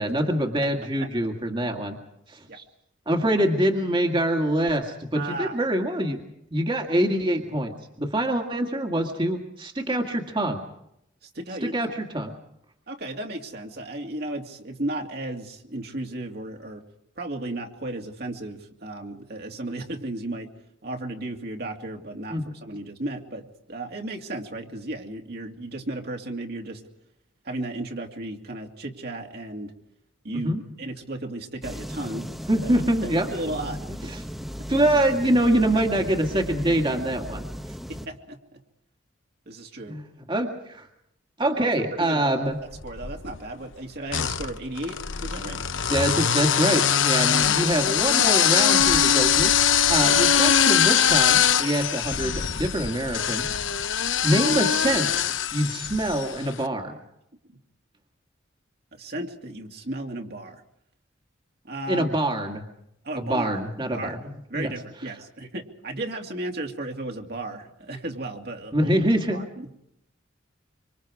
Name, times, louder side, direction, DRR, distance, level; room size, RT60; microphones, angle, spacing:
voice 1, 0.0-2.0 2.3-2.6 3.1-6.2 6.5-10.6 11.6-12.3 22.3-22.5 30.4-30.6 32.5-33.3 34.1-34.2 34.7-37.5 39.9-40.0 40.3-40.9 41.4-42.6 45.9-49.5 49.9-53.5 54.2-55.2 55.5-57.0 61.9-62.6 63.1-64.2 64.5-64.7 68.7-69.5, right 1 dB, 25° right, 3 dB, 2.0 m, -25 dB
voice 2, 5.1-5.6 11.2-11.7 12.9-16.8 17.2-20.5 20.8-26.8 27.4-29.7 30.2-32.3 32.6-34.2 34.6-34.7 37.7-38.6 39.5-40.0 41.6-42.5 42.8-45.7 47.4-47.6 50.0-50.1 57.5-57.6 58.9-60.6 61.6-62.1 63.0-63.7 63.9-68.9 69.3-69.7, right 1 dB, 55° right, 2 dB, 2.5 m, -35 dB
sound 1, 31.6-38.1, equal, ahead, 1.0 m, -36 dB
sound 2, 42.7-43.4 44.1-56.4, left 8 dB, 85° left, 1.0 m, -22 dB
25.5 x 25.5 x 4.9 m, 0.79 s
head